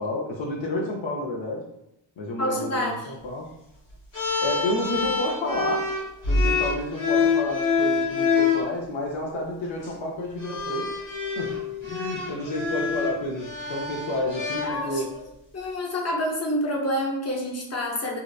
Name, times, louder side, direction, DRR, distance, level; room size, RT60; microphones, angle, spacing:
voice 1, 0.0-1.6 2.2-3.5 4.4-5.8 6.3-10.9 11.4-11.6 11.8-15.1, left 1 dB, 70° left, -2 dB, 0.6 m, -30 dB
voice 2, 2.4-3.1 14.6-15.0 15.5-18.2, equal, 30° left, -1 dB, 0.7 m, -28 dB
sound 1, 4.1-8.7 9.7-9.9 10.4-15.2, left 4 dB, 85° left, 1.0 m, -26 dB
2.7 x 2.0 x 2.3 m, 0.82 s
cardioid pair, 45°, 48 cm